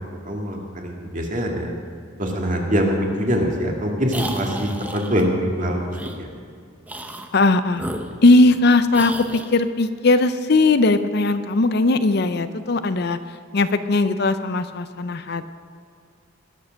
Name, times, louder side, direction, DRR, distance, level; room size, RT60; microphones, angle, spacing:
voice 1, 0.2-1.7 2.2-6.3, equal, 40° right, 0 dB, 2.2 m, -24 dB
sound 1, 4.1-5.3 5.9-6.2 6.8-7.3 7.7-8.6 8.9-9.5, right 1 dB, 10° right, 0.8 m, -33 dB
voice 2, 7.3-7.8 8.2-13.2 13.5-15.4, left 2 dB, 55° left, 11 dB, 0.6 m, -18 dB
20.0 x 7.6 x 6.4 m, 2.3 s
head